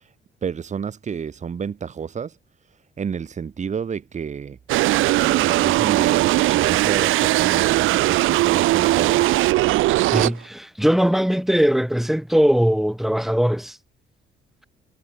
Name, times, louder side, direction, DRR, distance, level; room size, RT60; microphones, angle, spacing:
voice 1, 0.4-2.3 3.0-4.6 5.1-9.4, right 7 dB, 35° right, 0.9 m, -30 dB
sound 1, 4.7-10.3, right 17 dB, 90° right, 0.7 m, -19 dB
voice 2, 10.1-13.8, equal, ahead, 1.7 m, -20 dB
cardioid pair, 90°, 20 cm